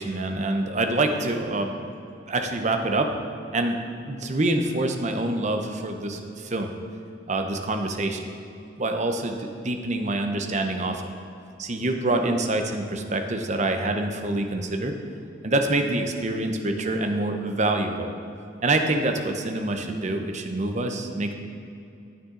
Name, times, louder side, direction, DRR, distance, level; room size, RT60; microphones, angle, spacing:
voice 1, 0.0-1.9 2.3-3.2 3.5-3.8 4.1-6.7 7.3-8.3 8.8-11.0 11.6-14.9 15.4-18.1 18.6-21.3, right 2 dB, 40° right, 5 dB, 0.8 m, -26 dB
9.6 x 9.0 x 3.9 m, 2.6 s
head